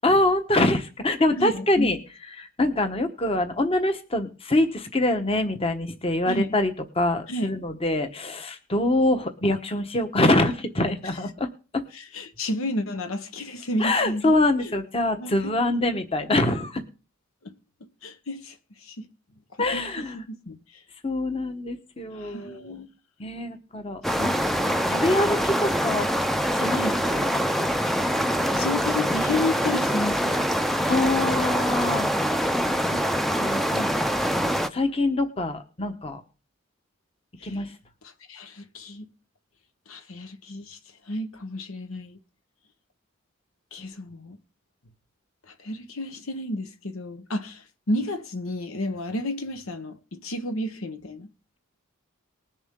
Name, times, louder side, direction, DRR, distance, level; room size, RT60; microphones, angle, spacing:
voice 1, 0.0-2.0 2.4-11.8 13.8-16.8 19.6-20.2 21.0-22.8 23.2-26.1 26.5-26.8 27.1-27.5 30.9-32.1 32.8-33.0 33.4-33.9 34.3-36.2 37.4-37.7, left 2 dB, 25° left, 1.1 m, -25 dB
voice 2, 1.4-1.9 6.3-6.5 7.3-7.6 11.1-11.3 11.9-14.3 14.6-14.7 15.0-16.0 17.4-17.5 17.8-19.1 19.5-20.8 22.1-22.9 24.1-24.3 26.7-27.0 28.5-30.4 37.4-37.7 38.0-39.1 39.9-40.8 41.0-42.2 43.7-44.4 45.5-51.3, left 1 dB, 80° left, 1.1 m, -32 dB
sound 1, 24.0-34.7, equal, ahead, 0.5 m, -24 dB
20.0 x 7.1 x 3.7 m
head